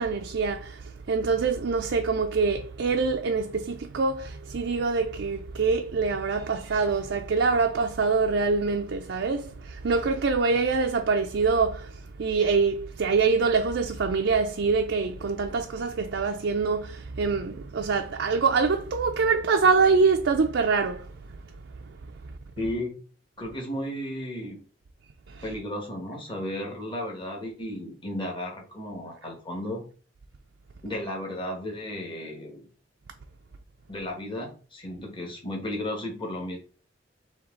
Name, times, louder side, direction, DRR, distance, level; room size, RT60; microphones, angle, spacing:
voice 1, 0.0-21.1 21.9-22.0 25.3-25.4, right 4 dB, 70° right, 0.4 m, -25 dB
voice 2, 22.6-23.0 23.4-24.6 25.4-29.9 30.8-32.6 33.9-36.6, left 1 dB, 25° left, 1.3 m, -34 dB
4.5 x 2.9 x 3.7 m
head